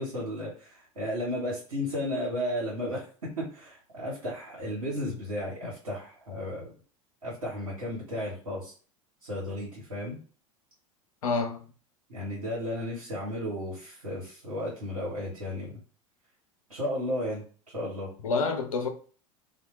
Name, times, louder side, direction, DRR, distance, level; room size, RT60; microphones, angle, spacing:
voice 1, 0.0-6.7 7.2-8.7 9.2-10.2 12.1-15.8 16.7-18.1, left 1 dB, 85° right, 1.0 m, -34 dB
voice 2, 11.2-11.6 18.2-18.9, left 4 dB, 75° left, 0.5 m, -28 dB
2.2 x 2.1 x 3.0 m
figure-of-eight pair, 80°, 18 cm